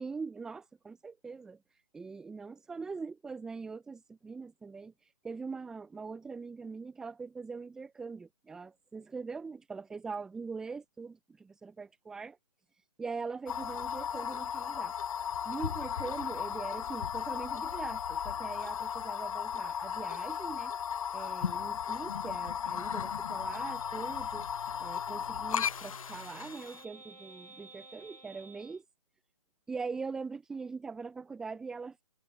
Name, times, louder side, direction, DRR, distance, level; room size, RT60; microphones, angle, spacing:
voice 1, 0.0-1.6 1.9-4.9 5.2-12.4 13.0-14.9 15.4-20.7 21.1-24.5 24.8-28.8 29.7-32.0, right 4 dB, 5° right, 0.4 m, -42 dB
sound 1, 13.5-26.8, left 8 dB, 65° left, 0.5 m, -36 dB
sound 2, 23.4-28.8, right 2 dB, 90° right, 4.8 m, -52 dB
figure-of-eight pair, 140°, 19 cm